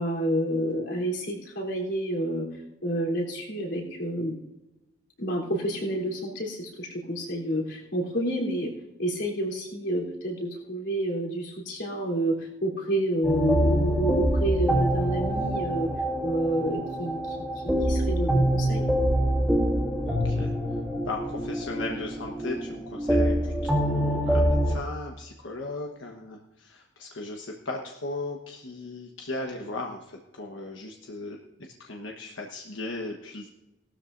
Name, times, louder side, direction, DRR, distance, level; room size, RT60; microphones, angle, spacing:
voice 1, 0.0-2.5 2.8-4.4 5.2-8.7 9.0-15.9 16.2-18.9, right 1 dB, 65° left, -2 dB, 3.6 m, -29 dB
sound 1, 13.2-24.8, right 1 dB, ahead, 2.2 m, -25 dB
voice 2, 20.0-20.5 21.0-33.5, left 2 dB, 90° left, 1 dB, 1.2 m, -37 dB
18.5 x 13.0 x 2.6 m, 0.94 s
head